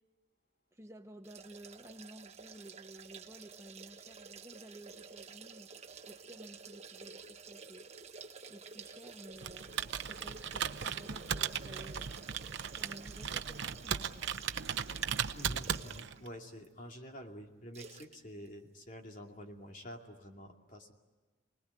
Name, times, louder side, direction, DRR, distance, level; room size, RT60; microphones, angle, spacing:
voice 1, 0.7-5.7 6.0-7.9 8.5-9.7 10.1-12.1 12.7-14.3, right 1 dB, 15° right, 5 dB, 0.8 m, -53 dB
sound 1, 1.2-16.2 16.6-16.7 17.7-18.2 18.4-18.5, right 5 dB, 35° right, 1.2 m, -51 dB
Computer keyboard, 9.4-16.3, right 7 dB, 60° right, 0.8 m, -37 dB
voice 2, 15.3-20.9, equal, 40° left, 3 dB, 2.5 m, -48 dB
29.0 x 20.0 x 9.6 m, 1.3 s
head